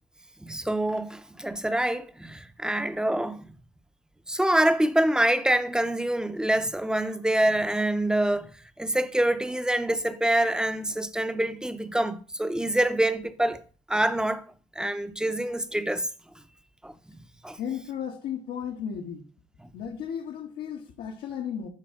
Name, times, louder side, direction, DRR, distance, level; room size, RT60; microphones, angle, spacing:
voice 1, 0.4-3.5 4.3-8.5 8.8-13.6 13.9-14.4 14.8-16.1 16.8-16.9 17.4-17.6 19.6-19.7, right 1 dB, 5° right, 0.7 m, -26 dB
voice 2, 17.6-19.3 19.7-21.7, left 8 dB, 70° left, 1.3 m, -34 dB
12.0 x 4.3 x 3.7 m
cardioid pair, 110°, 17 cm